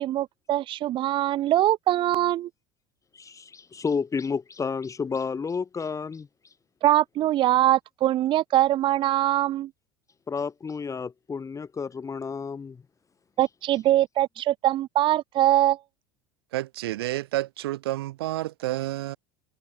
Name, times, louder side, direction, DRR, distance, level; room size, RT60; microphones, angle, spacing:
voice 1, 0.0-2.5 6.8-9.7 13.4-15.8, right 13 dB, 40° right, 0.5 m, -23 dB
voice 2, 3.1-6.5 10.3-12.8, left 5 dB, 25° left, 4.4 m, -31 dB
voice 3, 16.5-19.2, right 16 dB, 70° right, 3.1 m, -30 dB
figure-of-eight pair, 70°, 13 cm